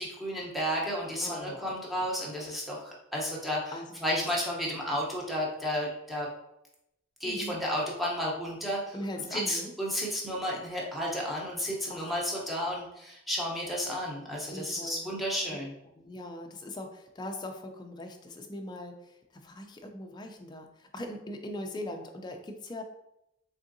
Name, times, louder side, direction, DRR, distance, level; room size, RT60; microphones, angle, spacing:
voice 1, 0.0-3.6 4.0-6.3 7.2-8.9 9.3-15.7, equal, ahead, -5 dB, 0.8 m, -32 dB
voice 2, 1.2-2.2 3.7-4.2 4.5-4.8 7.2-7.6 8.9-9.7 11.9-12.2 14.5-15.1 16.0-22.8, left 1 dB, 20° left, 4 dB, 0.4 m, -41 dB
3.6 x 3.5 x 2.6 m, 0.83 s
head